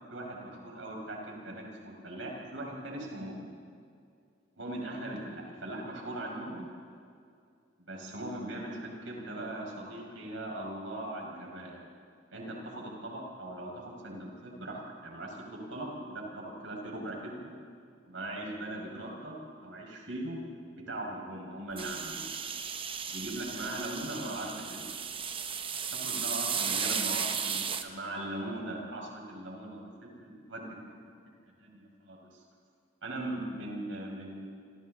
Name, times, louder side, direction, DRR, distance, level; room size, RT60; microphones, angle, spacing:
voice 1, 0.1-3.6 4.5-6.7 7.8-11.8 12.3-17.5 18.0-20.4 20.9-22.3 23.0-24.8 25.9-30.8 31.6-32.4 33.0-34.5, right 1 dB, 80° right, -1 dB, 5.4 m, -40 dB
sound 1, 21.8-27.8, right 7 dB, 30° right, 1.0 m, -34 dB
27.5 x 26.0 x 3.9 m, 2.4 s
head